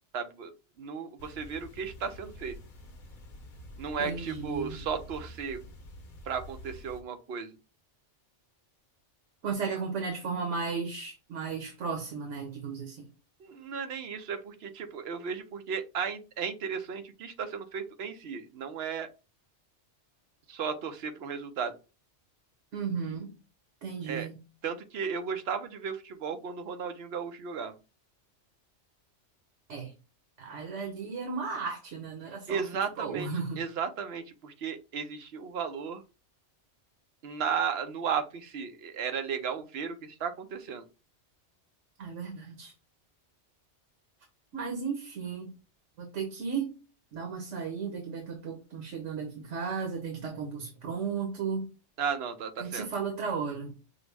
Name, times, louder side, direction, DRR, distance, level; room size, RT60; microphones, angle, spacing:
voice 1, 0.1-0.5 0.8-2.5 3.8-5.6 6.3-7.6 13.4-19.1 20.5-21.7 24.1-24.3 24.6-27.7 32.5-33.3 33.6-36.0 37.2-40.8 52.0-52.9, right 6 dB, 65° right, 8 dB, 0.9 m, -34 dB
sound 1, 1.2-7.0, equal, 50° left, 0.8 m, -48 dB
voice 2, 4.0-4.8 9.4-13.0 22.7-23.3 23.8-24.4 29.7-29.9 30.4-32.6 33.0-33.6 42.0-42.7 44.5-45.5 46.0-46.7 47.1-51.7 52.6-53.7, right 5 dB, 85° right, 2 dB, 1.3 m, -35 dB
5.9 x 2.0 x 3.4 m, 0.31 s
omnidirectional pair, 1.2 m